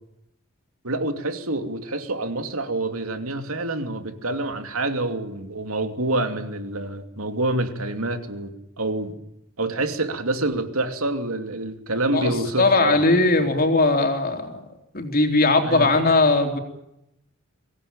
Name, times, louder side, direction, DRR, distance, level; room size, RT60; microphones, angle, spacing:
voice 1, 0.8-8.5 8.8-9.1 9.6-13.0 15.6-15.9, right 2 dB, 85° right, 7 dB, 2.8 m, -27 dB
voice 2, 12.1-14.6 14.9-16.6, left 2 dB, 45° left, 4 dB, 3.8 m, -19 dB
24.5 x 18.0 x 8.9 m, 0.83 s
head